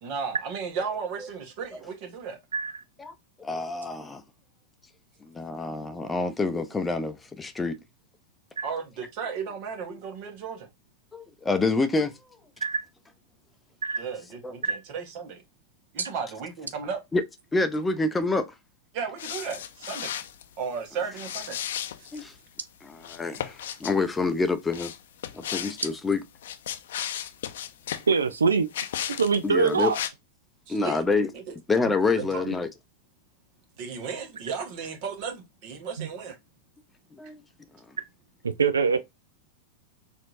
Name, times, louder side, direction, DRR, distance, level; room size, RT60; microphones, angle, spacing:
voice 1, 0.0-2.4 8.6-10.7 14.0-15.4 15.9-17.0 18.9-20.1 20.6-21.6 22.0-22.2 30.7-31.5 32.1-32.5 33.8-36.4, right 6 dB, 50° right, 1.2 m, -35 dB
voice 2, 2.5-2.8 8.6-8.7 12.6-12.8 13.8-14.0 14.6-14.8 16.0-16.1 28.1-28.7 29.2-30.0 32.4-32.5 36.0-36.1 38.4-39.0, right 5 dB, 85° right, 0.3 m, -24 dB
voice 3, 3.4-4.2 5.2-7.8 9.9-10.0 11.1-12.1 14.4-14.5 17.1-17.2 17.5-18.5 22.1-22.3 22.8-24.9 25.3-26.2 29.4-29.9 30.7-31.3 31.7-32.7 37.2-37.4, left 3 dB, 15° left, 0.5 m, -27 dB
sound 1, 19.2-20.4 21.1-22.3 23.0-24.0 24.7-25.9 26.3-28.1 28.7-29.4 29.7-30.1, left 10 dB, 70° left, 0.5 m, -34 dB
4.2 x 2.6 x 2.5 m
hypercardioid pair, 100°, 0 cm